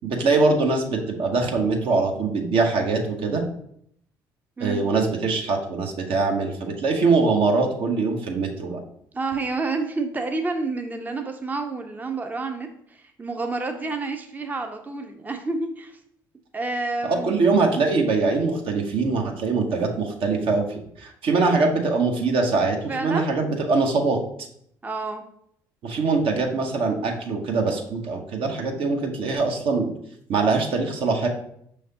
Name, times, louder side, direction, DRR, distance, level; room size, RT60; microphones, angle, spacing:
voice 1, 0.0-3.4 4.6-8.8 17.0-24.5 25.8-29.9 30.3-31.3, right 3 dB, 60° right, 3 dB, 0.8 m, -23 dB
voice 2, 9.1-16.0 16.5-17.4 22.9-23.3 24.8-25.2, right 3 dB, 15° right, 5 dB, 0.5 m, -29 dB
5.4 x 3.2 x 2.8 m, 0.70 s
hypercardioid pair, 50°, 10 cm